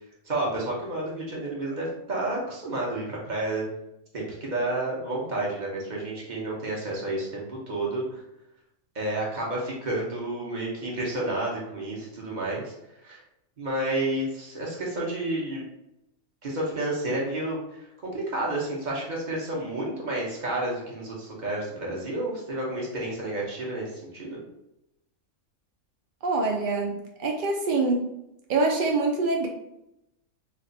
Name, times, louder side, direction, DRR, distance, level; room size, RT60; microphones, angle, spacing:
voice 1, 0.3-3.6 4.1-8.2 8.9-12.7 13.0-13.2 13.6-15.6 16.4-24.4, right 1 dB, 35° right, -4 dB, 1.0 m, -30 dB
voice 2, 26.2-28.1 28.5-29.5, right 3 dB, 80° right, 1 dB, 0.4 m, -25 dB
3.2 x 2.5 x 3.9 m, 0.84 s
omnidirectional pair, 1.5 m